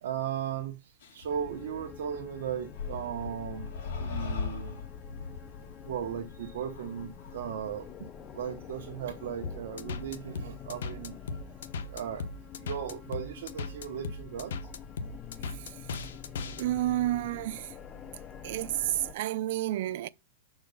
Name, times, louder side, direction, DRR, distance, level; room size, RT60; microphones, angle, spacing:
voice 1, 0.0-4.8 5.8-11.2 11.8-12.3 12.6-14.6, right 8 dB, 60° right, 1.1 m, -37 dB
sound 1, 1.0-1.2 2.7-7.5, left 5 dB, 55° left, 2.5 m, -39 dB
sound 2, 1.3-19.1, left 8 dB, 20° left, 0.4 m, -47 dB
sound 3, 9.4-16.6, left 4 dB, 75° left, 0.9 m, -37 dB
voice 2, 16.5-17.7 18.4-20.1, right 15 dB, 45° right, 0.4 m, -30 dB
6.6 x 4.7 x 5.4 m
supercardioid pair, 175°, 0 cm